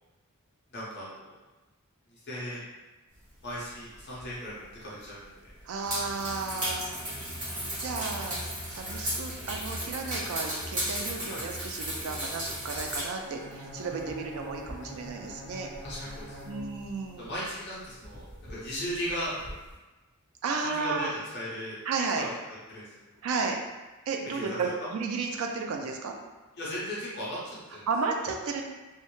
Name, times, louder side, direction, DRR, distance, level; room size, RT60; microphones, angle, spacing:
voice 1, 0.7-1.3 2.1-2.6 3.4-5.4 11.3-11.4 13.7-14.0 15.6-16.4 17.2-18.2 18.5-19.3 20.6-21.8 22.2-22.3 22.7-22.8 24.3-24.9 26.6-27.9, equal, 50° left, -8 dB, 0.6 m, -37 dB
sound 1, 4.0-4.3 4.6-4.7 5.5-13.1 13.4-16.9 17.2-17.5 17.8-19.7, equal, 35° right, 1.0 m, -36 dB
voice 2, 5.6-7.0 7.8-8.4 8.7-15.7 16.5-17.3 20.4-21.1 21.8-22.3 23.2-23.6 24.1-26.2 27.9-28.6, right 4 dB, 70° right, 2 dB, 0.3 m, -33 dB
Bowed string instrument, 13.2-17.3, left 1 dB, 20° left, 0.9 m, -45 dB
2.1 x 2.0 x 2.9 m, 1.2 s
head